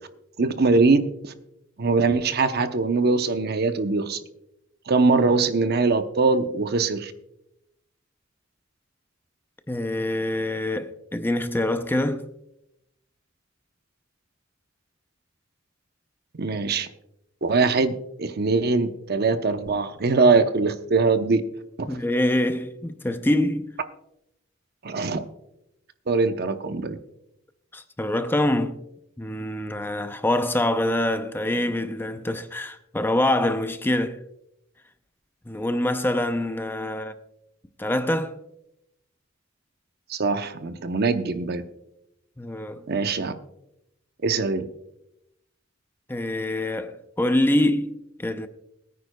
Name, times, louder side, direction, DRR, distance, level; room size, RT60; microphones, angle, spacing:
voice 1, 0.4-1.3 1.8-4.2 4.9-7.1 16.4-16.9 17.4-17.9 18.2-21.4 21.8-22.0 24.8-25.2 26.1-27.0 40.1-41.6 42.9-43.3 44.2-44.7, right 3 dB, 55° right, 0.8 m, -22 dB
voice 2, 9.7-12.2 21.9-23.7 27.7-28.8 29.2-34.2 35.5-37.1 37.8-38.3 42.4-42.8 46.1-48.5, left 1 dB, 10° left, 0.5 m, -25 dB
21.5 x 9.4 x 2.2 m
head